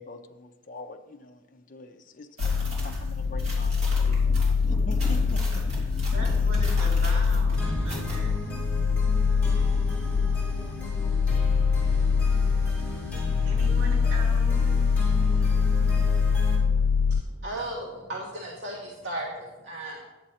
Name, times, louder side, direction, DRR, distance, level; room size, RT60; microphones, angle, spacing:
voice 1, 0.0-5.9, left 2 dB, 40° left, 0.6 m, -44 dB
sound 1, 2.4-17.2, left 5 dB, 85° left, 0.3 m, -24 dB
sound 2, 2.4-8.2, equal, 35° right, 3.2 m, -34 dB
voice 2, 6.1-8.3 12.9-13.1 13.5-14.8 15.3-15.6, right 1 dB, 80° right, 3.4 m, -40 dB
sound 3, 7.5-16.6, equal, 5° left, 3.3 m, -36 dB
voice 3, 16.8-20.1, right 1 dB, 60° right, 1.2 m, -36 dB
10.0 x 7.5 x 4.3 m
head